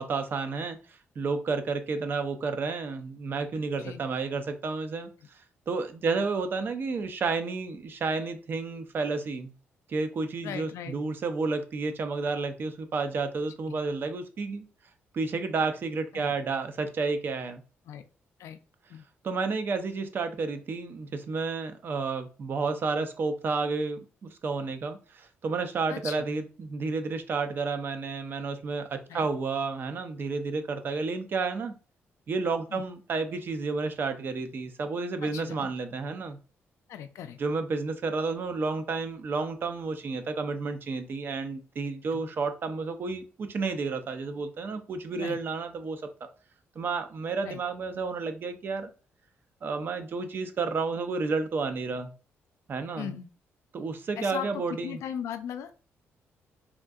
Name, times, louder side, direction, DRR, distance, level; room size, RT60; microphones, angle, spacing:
voice 1, 0.0-5.1 5.7-9.5 9.9-14.7 15.1-17.6 19.2-31.7 32.3-36.4 37.4-46.0 46.8-48.9 49.6-52.1 52.7-53.1 53.7-55.0, right 4 dB, 45° right, 8 dB, 0.4 m, -31 dB
voice 2, 10.4-11.0 13.7-13.8 16.1-16.3 17.9-18.0 18.4-18.6 18.9-19.1 25.9-26.3 29.1-29.3 32.7-32.8 35.2-35.7 36.9-37.4 42.1-42.3 45.1-45.4 47.4-47.6 53.0-53.3 54.2-55.7, left 9 dB, 80° left, 9 dB, 0.4 m, -38 dB
3.6 x 2.6 x 2.3 m, 0.36 s
cardioid pair, 120°, 5 cm